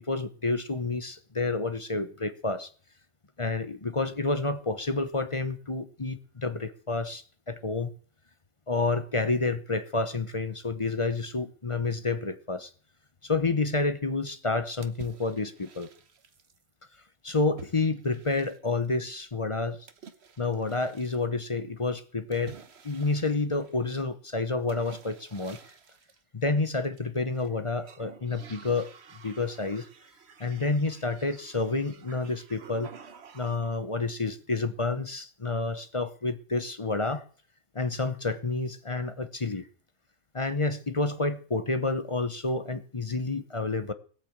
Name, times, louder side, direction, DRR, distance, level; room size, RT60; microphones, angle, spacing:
voice 1, 0.0-2.7 3.4-7.9 8.7-12.7 13.2-15.9 17.2-19.8 20.4-22.5 22.8-25.6 26.3-28.9 29.2-29.8 30.4-32.9 33.3-37.3 37.7-39.7 40.3-43.9, left 3 dB, 25° left, 11 dB, 0.8 m, -29 dB
sound 1, 14.8-16.6 17.6-18.9 19.9-21.3 22.3-24.0 24.7-26.2 26.8-27.5 27.8-33.8, right 6 dB, 55° right, 1.3 m, -51 dB
18.0 x 8.6 x 7.3 m, 0.44 s
omnidirectional pair, 1.4 m